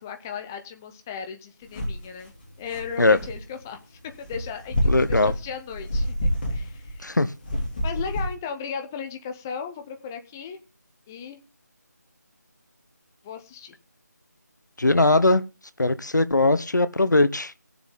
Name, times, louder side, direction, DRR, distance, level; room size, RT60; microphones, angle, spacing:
voice 1, 0.0-2.3 2.6-6.1 6.5-7.1 7.8-10.6 11.1-11.4 13.2-13.7, left 7 dB, 10° left, 0.5 m, -36 dB
sound 1, 1.7-2.0 2.4-3.4 4.2-7.1 7.4-8.3, equal, 30° left, 3.2 m, -27 dB
voice 2, 4.9-5.3 7.0-7.3 14.8-15.4 15.8-17.5, left 2 dB, 80° left, 1.1 m, -20 dB
18.0 x 7.2 x 3.7 m
figure-of-eight pair, 165°, 10 cm